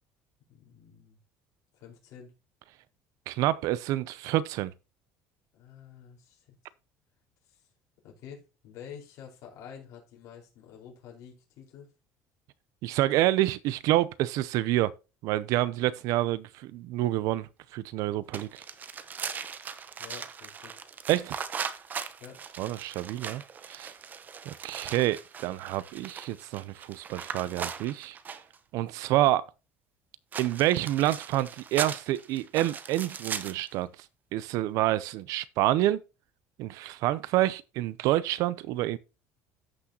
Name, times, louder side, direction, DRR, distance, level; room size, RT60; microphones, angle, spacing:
voice 1, 0.5-1.2 1.7-2.3 5.5-6.6 7.4-7.7 8.0-11.9 20.0-20.7 22.2-22.4, left 8 dB, 60° left, 4.8 m, -48 dB
voice 2, 3.3-4.7 12.8-14.9 15.2-18.5 21.1-21.3 22.6-23.4 23.7-23.9 24.5-28.2 28.7-29.5 30.4-33.9 34.3-36.0 36.6-39.0, right 15 dB, 65° right, 0.6 m, -28 dB
sound 1, 18.3-28.6 30.3-33.7, right 6 dB, 30° right, 0.8 m, -39 dB
14.0 x 6.2 x 2.9 m
cardioid pair, 150°, 6 cm